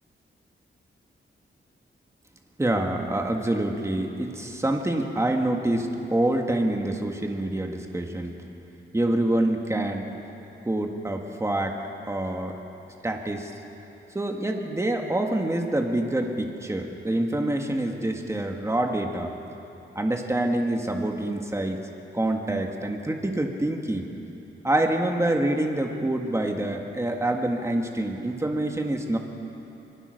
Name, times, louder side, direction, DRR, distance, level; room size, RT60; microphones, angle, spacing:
voice 1, 2.6-8.4 8.9-10.1 10.7-12.5 13.0-13.5 14.1-19.3 19.9-21.8 22.1-24.1 24.6-29.2, right 1 dB, 15° right, 2 dB, 1.7 m, -26 dB
26.0 x 20.0 x 6.6 m, 2.9 s
wide cardioid pair, 145°, 21 cm